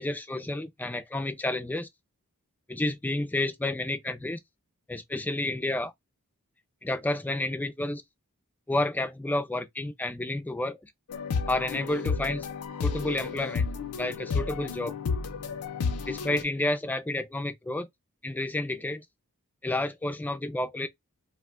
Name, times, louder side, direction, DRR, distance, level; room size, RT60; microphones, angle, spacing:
voice 1, 0.0-1.9 2.7-4.4 4.9-5.9 6.8-8.0 8.7-10.9 11.5-12.5 12.8-13.6 14.0-15.0 16.1-17.9 18.2-19.0 19.6-20.9, left 2 dB, 10° left, 0.3 m, -30 dB
sound 1, 11.1-16.4, left 5 dB, 85° left, 0.5 m, -31 dB
2.5 x 2.2 x 3.5 m
head